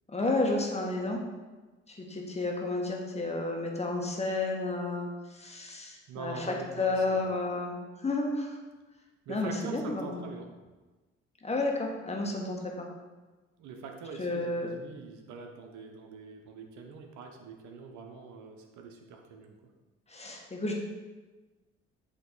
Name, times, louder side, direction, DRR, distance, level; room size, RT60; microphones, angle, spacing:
voice 1, 0.1-1.2 1.9-6.5 6.8-8.6 9.3-10.2 11.4-12.9 14.2-14.7 20.1-20.7, left 2 dB, 20° left, 0 dB, 1.4 m, -31 dB
voice 2, 6.1-7.4 9.3-10.5 13.6-19.6, right 4 dB, 75° right, 3 dB, 0.9 m, -44 dB
8.0 x 3.1 x 3.9 m, 1.2 s
supercardioid pair, 55°, 29 cm